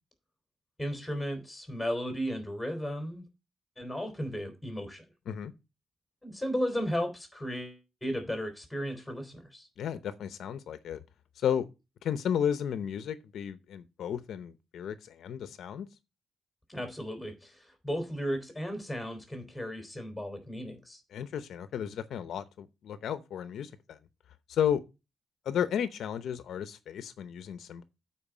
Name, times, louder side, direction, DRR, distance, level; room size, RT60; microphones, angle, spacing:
voice 1, 0.8-3.2 3.8-5.0 6.2-9.7 16.7-21.0, equal, 5° left, 3.2 m, -35 dB
voice 2, 9.8-11.0 11.4-11.7 12.0-15.9 21.1-24.0 24.5-24.8 25.5-27.8, left 9 dB, 80° left, 0.7 m, -33 dB
8.7 x 4.6 x 6.1 m
cardioid pair, 95°, 0 cm